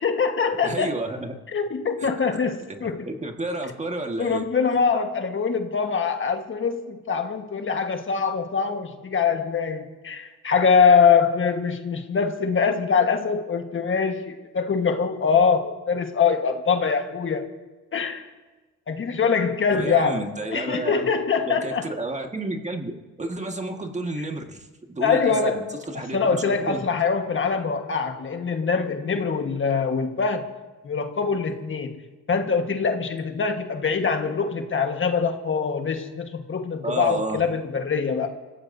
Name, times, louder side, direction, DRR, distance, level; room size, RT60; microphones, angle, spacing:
voice 1, 0.0-0.9 1.5-3.1 4.2-17.5 17.9-18.3 18.9-21.9 25.0-25.8 26.1-30.5 30.8-32.0 32.3-38.3, left 5 dB, 40° left, 5 dB, 1.5 m, -23 dB
voice 2, 0.6-1.3 2.0-2.1 3.1-4.4 19.7-21.1 21.5-26.8 36.8-37.4, right 2 dB, 25° right, 4 dB, 1.7 m, -31 dB
27.5 x 15.5 x 2.7 m, 1.2 s
cardioid pair, 90°, 30 cm